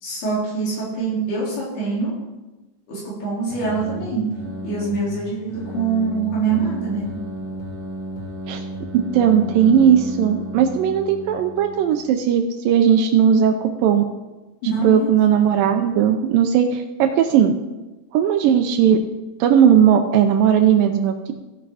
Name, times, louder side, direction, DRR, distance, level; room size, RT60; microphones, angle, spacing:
voice 1, 0.0-2.1 2.9-4.2 4.6-7.1 14.6-15.1, right 4 dB, 90° left, -7 dB, 5.8 m, -24 dB
sound 1, 3.5-12.1, equal, 20° left, 1.7 m, -33 dB
voice 2, 8.9-13.5 13.8-14.0 14.8-17.5 18.1-19.0 19.4-21.3, right 8 dB, 80° right, 6 dB, 2.1 m, -17 dB
15.0 x 5.9 x 4.8 m, 1.1 s
omnidirectional pair, 4.4 m